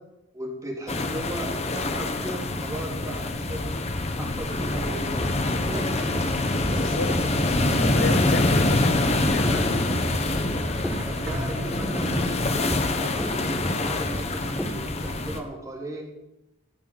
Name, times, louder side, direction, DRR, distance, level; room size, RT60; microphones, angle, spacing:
voice 1, 0.3-3.8 4.2-5.9 11.1-13.1 13.7-16.0, right 1 dB, 15° right, 3.6 m, -37 dB
sound 1, 0.9-15.4, left 2 dB, 30° left, 1.1 m, -26 dB
sound 2, 4.6-14.8, equal, 5° left, 1.3 m, -35 dB
sound 3, 5.4-12.1, equal, 60° right, 5.6 m, -34 dB
voice 2, 6.8-7.2 7.8-9.9, left 3 dB, 80° left, 1.3 m, -32 dB
15.5 x 6.7 x 9.1 m
head